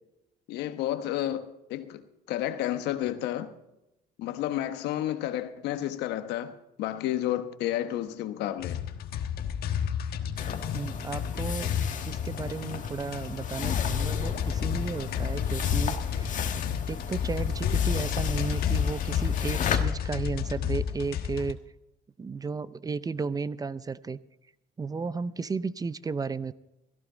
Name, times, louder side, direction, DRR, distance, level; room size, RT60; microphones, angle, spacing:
voice 1, 0.5-2.0 2.3-3.5 4.2-8.8, left 12 dB, 85° left, 1.1 m, -31 dB
sound 1, 8.6-21.5, left 8 dB, 65° left, 1.3 m, -30 dB
sound 2, 10.4-19.8, left 7 dB, 50° left, 1.5 m, -37 dB
voice 2, 10.7-11.8 12.0-16.5 16.9-21.6 22.2-24.2 24.8-26.5, right 4 dB, 20° right, 0.5 m, -34 dB
17.5 x 14.5 x 3.9 m
cardioid pair, 110°, 17 cm